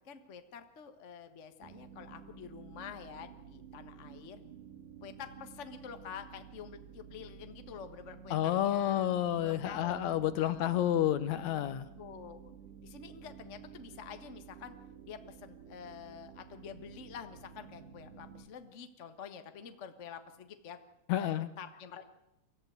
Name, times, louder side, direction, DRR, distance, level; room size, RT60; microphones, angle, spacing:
voice 1, 0.0-4.4 5.0-9.1 9.4-10.0 10.4-10.8 12.0-12.4 12.8-14.7 15.0-20.8 21.1-22.0, left 7 dB, 50° left, 8 dB, 0.8 m, -48 dB
sound 1, 1.6-18.5, right 7 dB, 75° right, 3.2 m, -52 dB
voice 2, 8.3-11.9 21.1-21.5, left 11 dB, 70° left, 14 dB, 2.1 m, -30 dB
23.5 x 15.0 x 9.3 m, 0.87 s
omnidirectional pair, 3.7 m